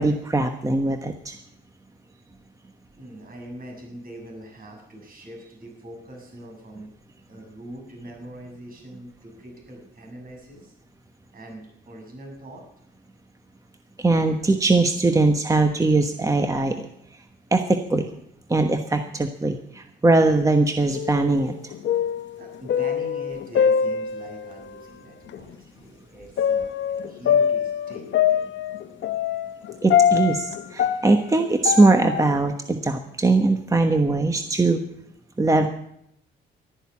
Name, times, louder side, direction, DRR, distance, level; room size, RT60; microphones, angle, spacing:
voice 1, 0.0-1.4 14.0-16.9 17.5-18.1 18.5-21.7 29.8-34.8 35.4-35.7, right 2 dB, 15° right, 6 dB, 1.2 m, -21 dB
voice 2, 3.0-6.9 7.2-10.7 11.3-12.6 22.4-26.7 27.0-28.4, right 1 dB, 45° right, 1 dB, 7.2 m, -42 dB
sound 1, 20.9-21.5 21.7-24.5 25.3-25.4 26.4-32.4, left 8 dB, 65° left, 0.9 m, -23 dB
12.5 x 10.5 x 8.5 m, 0.75 s
cardioid pair, 90°, 20 cm